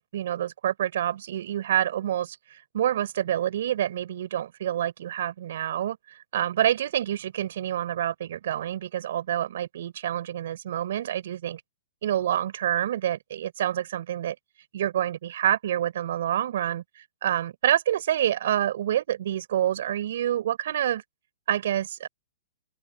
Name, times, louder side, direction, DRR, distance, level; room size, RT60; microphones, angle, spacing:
voice 1, 0.0-11.6 12.0-14.4 14.7-21.0 21.5-22.1, right 11 dB, 65° right, 7.3 m, -27 dB
open air
hypercardioid pair, 145°, 0 cm